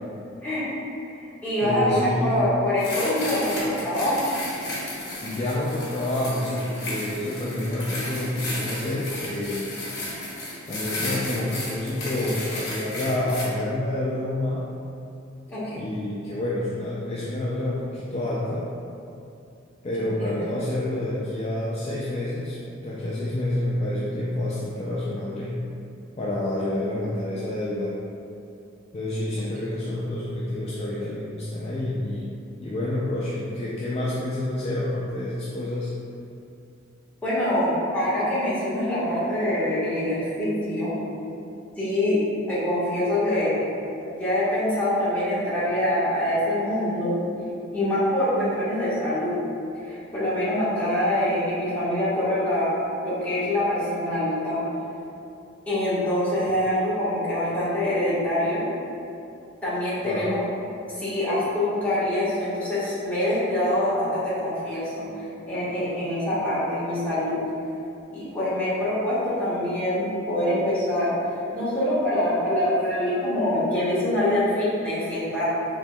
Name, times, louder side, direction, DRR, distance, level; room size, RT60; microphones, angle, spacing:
voice 1, 1.1-4.3 15.5-15.8 20.2-20.3 37.2-40.9 41.8-43.6 44.0-47.1 47.7-49.4 49.8-52.7 53.0-54.6 55.7-58.6 59.6-60.4 61.0-67.4 68.1-75.4, left 1 dB, 10° left, -13 dB, 1.2 m, -25 dB
voice 2, 1.6-2.5 5.2-9.7 10.7-14.7 15.7-18.7 19.8-25.6 26.2-28.0 28.9-32.3 32.6-36.0 60.0-60.4, left 1 dB, 30° left, -6 dB, 0.3 m, -28 dB
sound 1, 2.8-13.4, left 1 dB, 55° left, 1.0 m, -33 dB
5.2 x 2.8 x 2.2 m, 2.7 s
head